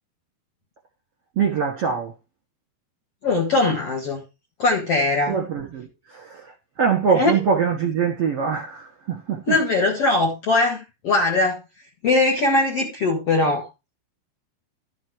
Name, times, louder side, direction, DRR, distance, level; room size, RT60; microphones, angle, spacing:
voice 1, 1.4-2.1 5.3-9.6, right 6 dB, 55° right, 1.7 m, -23 dB
voice 2, 3.2-4.2 4.6-5.4 7.1-7.4 9.5-11.6 12.0-13.7, left 2 dB, 50° left, 1.9 m, -20 dB
12.5 x 6.3 x 4.7 m
omnidirectional pair, 5.0 m